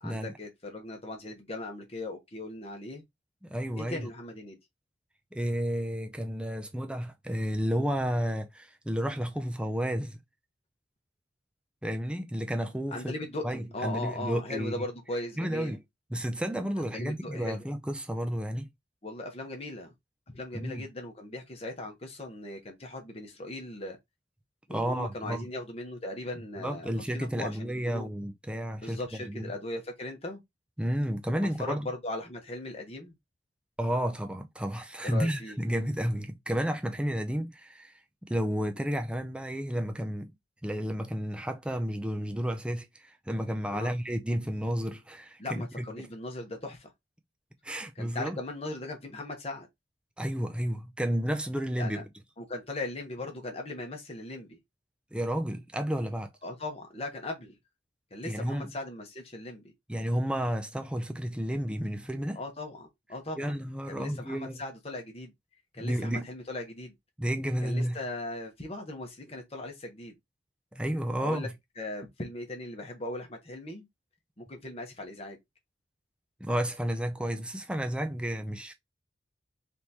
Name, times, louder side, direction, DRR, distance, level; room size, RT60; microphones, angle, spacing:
voice 1, 0.0-3.0 3.8-4.6 12.9-15.8 16.8-17.6 19.0-19.9 20.3-24.0 24.7-28.1 28.8-30.4 31.4-33.1 35.0-35.6 43.7-43.9 45.4-46.9 47.9-49.7 51.8-52.0 52.4-54.6 56.4-57.5 58.1-59.7 62.3-63.6 63.9-65.3 65.7-66.9 67.6-70.1 71.2-71.5 71.8-73.8 74.4-75.4, left 2 dB, 30° left, 1.0 m, -38 dB
voice 2, 3.4-4.1 5.3-10.2 11.8-13.1 13.4-14.9 15.4-15.8 16.1-18.7 20.5-20.8 24.7-25.5 26.6-29.5 30.8-31.9 33.8-37.9 38.3-40.3 40.6-46.1 47.6-48.4 50.2-52.1 55.1-56.3 58.3-58.7 59.9-62.4 63.4-64.6 65.8-66.3 67.2-68.0 70.7-71.5 76.4-78.7, equal, 5° right, 0.5 m, -31 dB
3.5 x 3.0 x 4.1 m
head